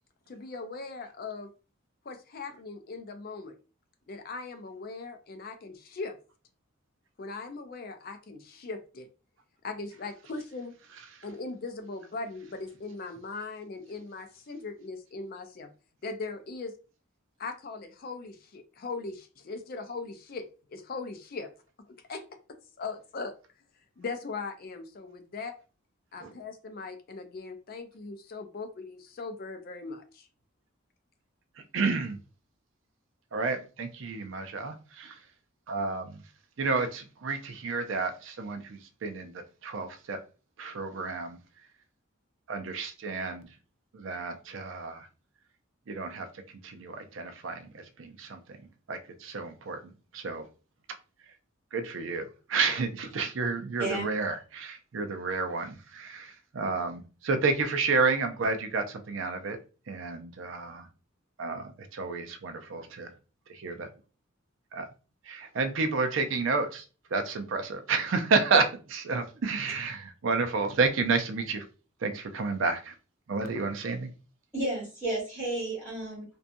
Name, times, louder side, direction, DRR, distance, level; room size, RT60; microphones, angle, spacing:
voice 1, 0.3-1.5 2.1-3.6 4.1-6.2 7.2-9.1 9.6-10.7 11.2-15.7 16.0-16.7 17.4-21.5 22.1-22.2 22.8-23.3 24.0-25.5 26.1-30.3, left 3 dB, 45° left, 0.4 m, -39 dB
voice 2, 31.7-32.2 33.3-35.2 35.7-36.2 36.6-39.3 39.6-40.2 40.6-41.4 42.5-43.5 43.9-45.1 45.9-46.3 46.6-48.4 48.9-49.8 50.1-50.4 51.7-59.6 59.9-60.9 61.4-63.1 63.5-63.9 64.7-64.9 65.3-66.8 67.1-68.6 68.9-71.6 72.0-72.9 73.3-74.1, right 4 dB, 70° right, 0.5 m, -30 dB
voice 3, 74.5-76.2, right 2 dB, 10° right, 1.2 m, -32 dB
2.6 x 2.2 x 2.6 m
head